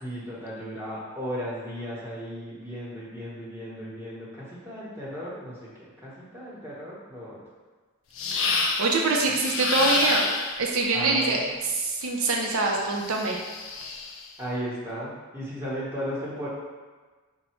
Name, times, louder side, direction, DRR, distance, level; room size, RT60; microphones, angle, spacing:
voice 1, 0.0-7.4 10.9-11.5 14.4-16.5, equal, 10° right, -7 dB, 1.0 m, -35 dB
sound 1, 8.2-9.0 9.4-10.7 12.4-14.3, left 4 dB, 65° left, 0.5 m, -29 dB
voice 2, 8.3-10.3 10.6-13.4, right 3 dB, 75° right, 0 dB, 0.6 m, -25 dB
5.4 x 2.2 x 4.3 m, 1.4 s
head